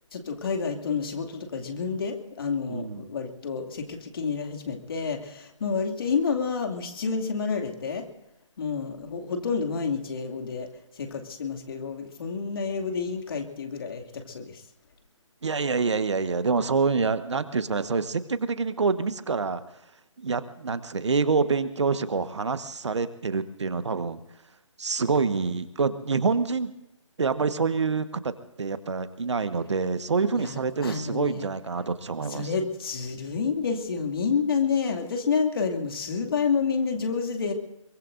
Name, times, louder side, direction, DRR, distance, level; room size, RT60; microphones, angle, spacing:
voice 1, 0.1-8.1 8.6-10.7 11.0-14.6 30.3-31.5 32.3-37.5, left 5 dB, 45° left, 4 dB, 2.5 m, -29 dB
voice 2, 2.7-3.1 15.4-19.6 20.2-24.2 24.8-26.7 27.2-28.3 28.6-32.5, right 4 dB, 60° right, 12 dB, 1.3 m, -26 dB
23.5 x 22.5 x 2.6 m, 0.88 s
figure-of-eight pair, 150°, 17 cm